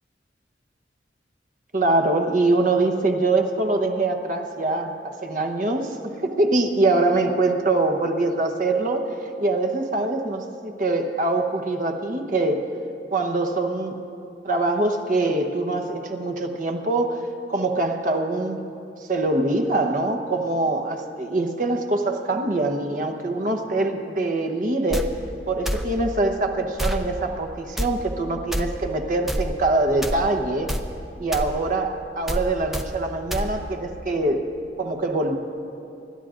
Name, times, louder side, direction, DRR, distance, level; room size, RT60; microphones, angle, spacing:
voice 1, 1.7-9.1 9.4-12.7 13.1-14.0 14.4-17.2 17.5-18.7 19.1-25.2 25.5-30.7 31.2-34.5 34.8-35.4, right 2 dB, 50° right, 4 dB, 1.0 m, -23 dB
sound 1, 24.9-25.1 25.7-25.9 26.8-27.0 27.8-27.9 28.5-28.6 29.3-29.5 30.0-30.2 30.7-30.9 31.3-31.5 32.3-32.4 32.7-32.9 33.3-33.5, equal, ahead, 0.5 m, -26 dB
27.0 x 12.0 x 2.5 m, 2.6 s
head